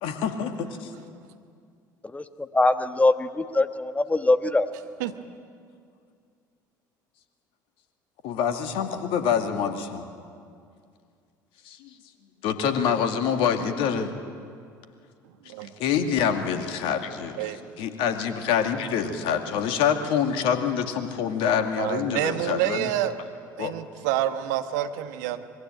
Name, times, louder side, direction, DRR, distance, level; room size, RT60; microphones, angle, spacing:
voice 1, 0.0-0.9 8.2-10.1 11.6-11.9 12.4-14.2 15.8-17.4 17.8-22.9 23.6-23.7, left 7 dB, 60° left, 7 dB, 2.2 m, -26 dB
voice 2, 2.1-4.7, left 2 dB, 15° left, 11 dB, 1.4 m, -23 dB
voice 3, 21.8-23.1 23.6-25.4, right 12 dB, 65° right, 9 dB, 1.3 m, -28 dB
25.0 x 22.0 x 8.9 m, 2.3 s
figure-of-eight pair, 60°, 10 cm